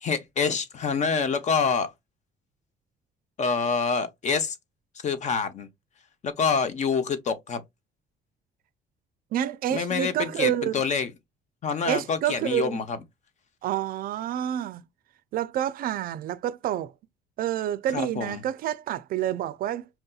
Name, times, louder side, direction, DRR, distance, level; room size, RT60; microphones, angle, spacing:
voice 1, 0.0-1.9 3.4-4.6 5.0-5.7 6.2-7.6 9.7-11.1 11.6-13.0 17.9-18.4, left 5 dB, 45° left, 0.7 m, -26 dB
voice 2, 9.3-10.8 11.9-12.8 13.6-14.8 15.3-16.9 17.4-19.9, right 11 dB, 60° right, 0.4 m, -28 dB
4.4 x 2.7 x 2.3 m
cardioid pair, 110°, 17 cm